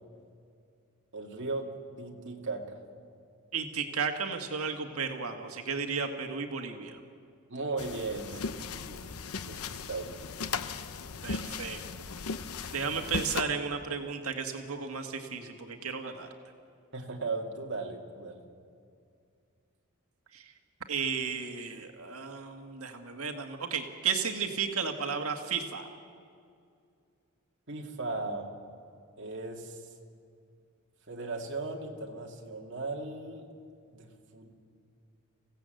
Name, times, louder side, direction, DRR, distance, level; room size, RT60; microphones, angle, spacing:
voice 1, 1.1-2.8 7.5-9.0 9.5-9.6 9.9-10.2 16.9-18.4 27.7-28.5 29.2-29.8 31.1-33.5 33.9-34.5, right 3 dB, 55° right, 0 dB, 2.4 m, -37 dB
voice 2, 3.5-7.0 11.2-11.8 12.7-16.3 20.3-20.5 20.9-25.9, right 5 dB, 80° right, 5 dB, 1.9 m, -34 dB
sound 1, 7.8-13.4, left 5 dB, 90° left, 0.8 m, -37 dB
26.5 x 16.5 x 7.8 m, 2.4 s
head